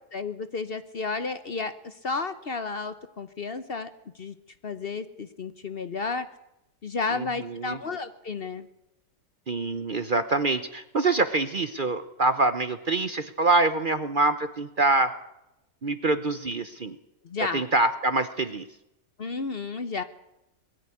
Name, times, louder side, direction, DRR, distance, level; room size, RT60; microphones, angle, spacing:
voice 1, 0.1-4.3 4.6-6.3 6.8-8.7 17.2-17.7 19.2-20.0, left 4 dB, 45° left, 11 dB, 1.0 m, -32 dB
voice 2, 9.5-15.1 15.8-17.0 17.5-18.7, right 3 dB, 40° right, 11 dB, 0.9 m, -25 dB
20.5 x 14.0 x 9.8 m, 0.89 s
omnidirectional pair, 1.6 m